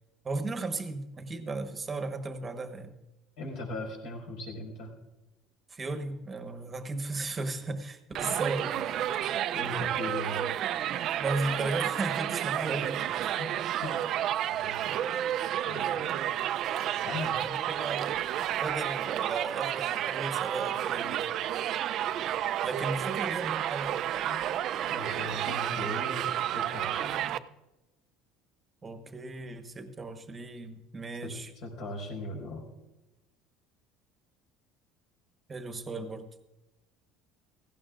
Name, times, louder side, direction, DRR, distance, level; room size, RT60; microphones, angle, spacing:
voice 1, 0.2-2.9 5.7-8.9 11.2-13.3 15.8-16.0 17.3-18.1 18.5-21.3 22.6-24.1 28.8-31.5 35.5-36.2, right 3 dB, 20° right, 7 dB, 1.1 m, -35 dB
voice 2, 3.4-4.9 9.5-10.5 12.5-12.7 13.4-13.5 13.8-13.9 14.4-14.8 15.6-16.3 16.8-17.4 24.3-24.4 24.9-27.3 31.2-31.3 31.6-32.6, left 2 dB, 65° left, 1 dB, 4.7 m, -39 dB
Crowd, 8.1-27.4, right 11 dB, 45° right, 0.4 m, -31 dB
17.0 x 16.0 x 2.5 m, 1.0 s
cardioid pair, 150°, 0 cm